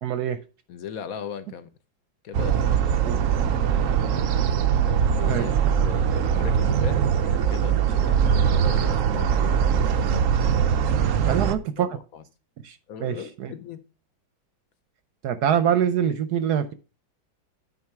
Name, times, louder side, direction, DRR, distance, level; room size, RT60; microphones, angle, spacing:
voice 1, 0.0-0.4 3.1-3.2 5.3-5.5 11.2-11.9 12.6-13.5 15.2-16.7, right 9 dB, 70° right, 1.0 m, -24 dB
voice 2, 0.7-1.7 2.2-3.2 5.2-5.5 5.8-9.7 11.2-11.5 11.8-12.2 12.9-13.8, left 8 dB, 60° left, 1.0 m, -38 dB
sound 1, 2.3-11.6, right 8 dB, 85° right, 0.7 m, -22 dB
9.7 x 4.5 x 4.6 m
omnidirectional pair, 2.1 m